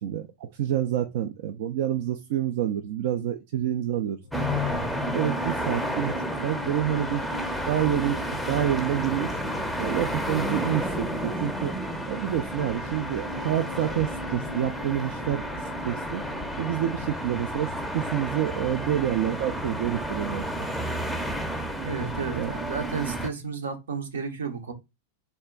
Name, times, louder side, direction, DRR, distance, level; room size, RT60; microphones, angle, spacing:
voice 1, 0.0-4.6 5.1-6.1 6.4-7.2 7.7-9.4 9.8-11.7 12.1-16.2 16.6-20.8 22.3-22.5, right 11 dB, 60° right, 0.4 m, -28 dB
sound 1, 4.2-20.9 21.1-21.5, left 2 dB, 85° left, 0.4 m, -42 dB
sound 2, 4.3-23.3, equal, ahead, 0.6 m, -31 dB
voice 2, 21.7-24.7, right 5 dB, 80° right, 0.8 m, -32 dB
3.4 x 2.2 x 3.7 m
hypercardioid pair, 100°, 0 cm